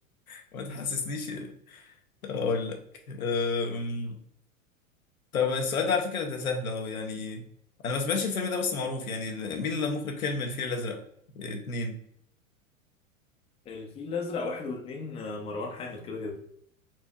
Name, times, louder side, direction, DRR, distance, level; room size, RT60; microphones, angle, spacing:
voice 1, 0.3-1.9 2.2-2.8 3.1-4.2 5.3-7.4 7.8-11.0 11.3-12.0, left 4 dB, 85° left, 3 dB, 0.8 m, -30 dB
voice 2, 13.7-16.4, left 4 dB, 15° left, 2 dB, 0.5 m, -35 dB
4.2 x 2.6 x 2.4 m, 0.70 s
hypercardioid pair, 100°, 41 cm